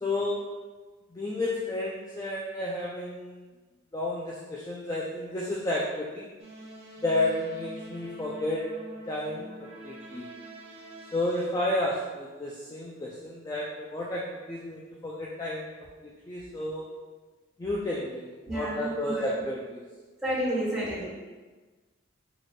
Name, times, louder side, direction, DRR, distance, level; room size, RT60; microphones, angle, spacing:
voice 1, 0.0-0.4 1.1-3.4 3.9-6.3 7.0-8.6 9.1-10.3 11.1-15.7 16.0-16.9 17.6-19.8, left 1 dB, 15° left, -4 dB, 0.3 m, -31 dB
sound 1, 6.4-11.5, right 1 dB, 60° right, 0.8 m, -45 dB
voice 2, 18.5-19.3 20.2-21.1, equal, 5° right, -9 dB, 1.2 m, -30 dB
4.9 x 2.3 x 4.0 m, 1.3 s
head